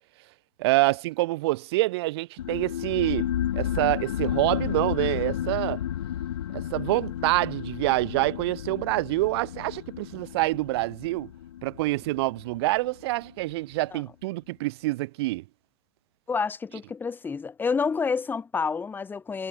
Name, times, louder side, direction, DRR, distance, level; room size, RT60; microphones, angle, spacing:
voice 1, 0.6-5.8 6.5-11.3 11.6-15.4, right 20 dB, 55° right, 2.2 m, -26 dB
sound 1, 2.4-13.5, left 11 dB, 70° left, 1.7 m, -32 dB
voice 2, 16.3-19.5, left 5 dB, 10° left, 0.8 m, -29 dB
hypercardioid pair, 100°, 16 cm